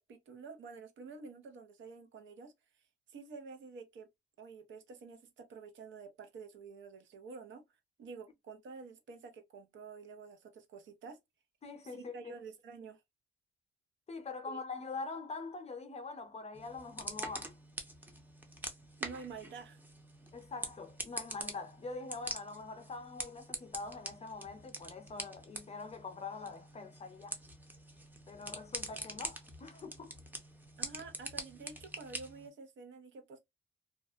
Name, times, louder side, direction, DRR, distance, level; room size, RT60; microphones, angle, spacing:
voice 1, 0.0-2.5 3.1-4.1 4.4-7.6 8.0-11.2 11.8-13.0 14.5-14.6 19.0-19.8 30.8-33.4, right 4 dB, 70° right, 0.8 m, -49 dB
voice 2, 11.6-12.2 14.1-17.5 20.3-27.4 28.3-30.1, left 4 dB, 30° left, 0.7 m, -44 dB
sound 1, 16.5-32.5, right 1 dB, 10° right, 0.7 m, -45 dB
2.4 x 2.2 x 2.4 m
cardioid pair, 90°, 20 cm